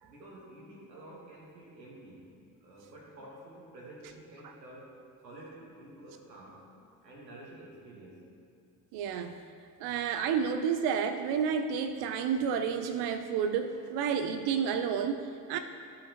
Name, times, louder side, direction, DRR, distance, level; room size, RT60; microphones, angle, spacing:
voice 1, 0.0-6.7 7.0-8.3 9.1-9.3, right 1 dB, 85° right, -4 dB, 1.4 m, -50 dB
voice 2, 8.9-9.3 9.8-15.6, right 7 dB, 55° right, 8 dB, 0.5 m, -30 dB
13.0 x 5.7 x 2.9 m, 2.4 s
figure-of-eight pair, 45°, 48 cm